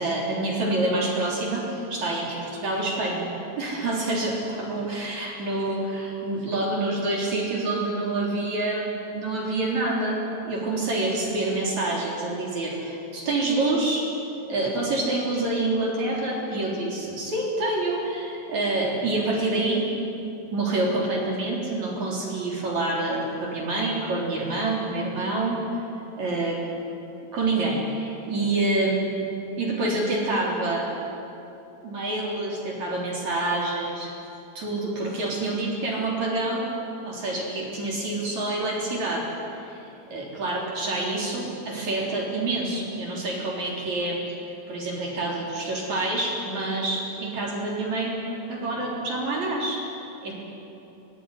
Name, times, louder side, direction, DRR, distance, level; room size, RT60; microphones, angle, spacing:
voice 1, 0.0-3.3 3.6-14.1 14.5-19.9 20.5-25.6 26.2-26.6 27.3-29.1 29.6-30.9 31.8-34.1 34.5-36.7 37.0-39.8 40.1-44.2 44.7-48.2 48.5-49.9 50.2-50.3, right 2 dB, 45° right, -2 dB, 4.7 m, -27 dB
23.5 x 20.0 x 9.8 m, 2.9 s
omnidirectional pair, 4.7 m